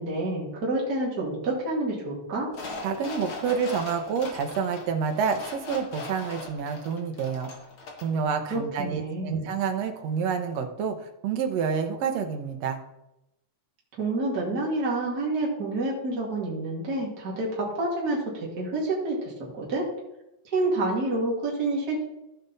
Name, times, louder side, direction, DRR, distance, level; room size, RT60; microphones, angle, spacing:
voice 1, 0.0-2.5 8.5-9.5 14.0-19.8 20.5-22.0, right 2 dB, 35° right, -4 dB, 2.5 m, -28 dB
sound 1, 2.5-8.2 8.5-8.6, left 3 dB, 50° left, 2.0 m, -40 dB
voice 2, 2.8-7.5 8.0-12.8, right 6 dB, 65° right, 6 dB, 1.9 m, -28 dB
14.5 x 5.1 x 4.1 m, 0.89 s
omnidirectional pair, 3.4 m